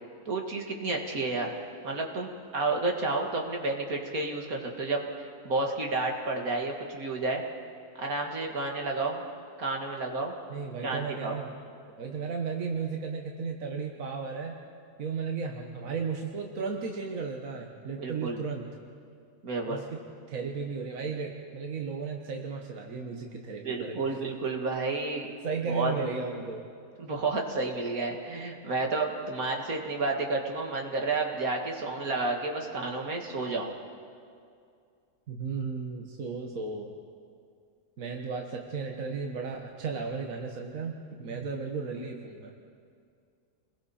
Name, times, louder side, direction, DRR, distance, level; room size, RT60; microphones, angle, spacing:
voice 1, 0.3-1.5 1.8-5.1 5.4-7.4 8.0-9.2 9.6-10.3 10.8-11.4 18.0-18.4 19.4-19.8 23.6-25.3 25.7-26.1 27.0-33.7, right 3 dB, 85° right, 1 dB, 2.5 m, -31 dB
voice 2, 10.5-11.5 12.0-14.5 15.0-18.7 19.7-20.0 20.3-24.1 25.4-26.6 35.3-37.0 38.0-42.5, right 5 dB, 70° right, 1 dB, 1.7 m, -35 dB
29.0 x 21.0 x 4.3 m, 2.3 s
omnidirectional pair, 1.5 m